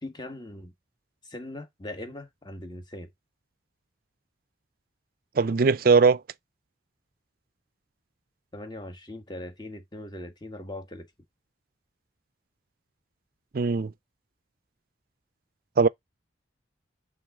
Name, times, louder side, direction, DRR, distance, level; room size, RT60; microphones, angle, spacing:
voice 1, 0.0-0.7 1.2-3.1 8.5-11.1, left 1 dB, 20° left, 1.5 m, -40 dB
voice 2, 5.4-6.2 13.5-13.9 15.8-15.9, right 4 dB, 45° right, 0.4 m, -20 dB
9.1 x 3.9 x 3.6 m
head